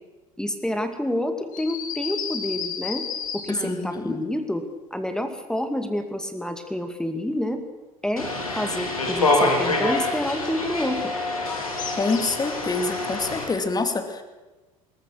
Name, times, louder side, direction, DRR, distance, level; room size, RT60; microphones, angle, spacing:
voice 1, 0.4-3.1 3.3-4.6 4.9-7.6 8.0-8.3 8.6-11.1, left 1 dB, 5° left, 7 dB, 2.3 m, -28 dB
sound 1, 1.5-3.8 11.8-12.5, left 7 dB, 50° left, 3.1 m, -32 dB
voice 2, 3.5-4.2 12.0-14.2, left 3 dB, 20° left, 7 dB, 2.5 m, -26 dB
sound 2, 8.2-13.4, left 2 dB, 90° left, 3.5 m, -26 dB
21.0 x 20.0 x 6.4 m, 1.2 s
figure-of-eight pair, 65°, 18 cm